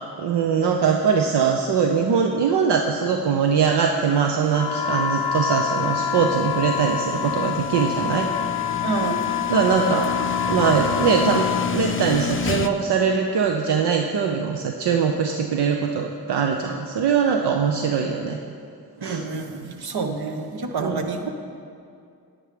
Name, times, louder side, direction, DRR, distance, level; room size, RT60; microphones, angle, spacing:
voice 1, 0.2-8.3 9.5-10.1 10.5-18.4 19.0-19.2 20.8-21.0, right 6 dB, 90° right, 3 dB, 0.6 m, -22 dB
sound 1, 4.3-12.7, left 6 dB, 35° left, 0.4 m, -31 dB
sound 2, 4.5-11.8, left 7 dB, 75° left, 0.7 m, -26 dB
voice 2, 8.8-9.2 19.0-21.3, right 4 dB, 70° right, 5 dB, 1.0 m, -28 dB
9.9 x 9.1 x 5.0 m, 2.4 s
cardioid pair, 50°, 39 cm